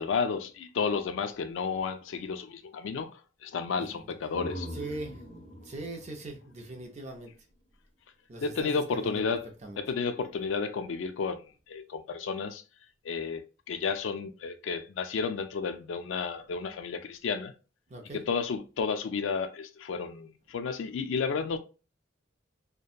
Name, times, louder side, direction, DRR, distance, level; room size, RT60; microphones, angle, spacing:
voice 1, 0.0-4.7 8.4-9.5 9.8-11.4 11.7-12.6 13.0-17.5 18.1-21.6, left 5 dB, 75° left, 0.3 m, -32 dB
voice 2, 3.7-4.1 4.7-7.5 8.3-9.8 17.9-18.2, right 2 dB, 35° right, 0.5 m, -41 dB
sound 1, 4.0-7.7, equal, 30° left, 1.3 m, -43 dB
2.7 x 2.2 x 2.4 m
head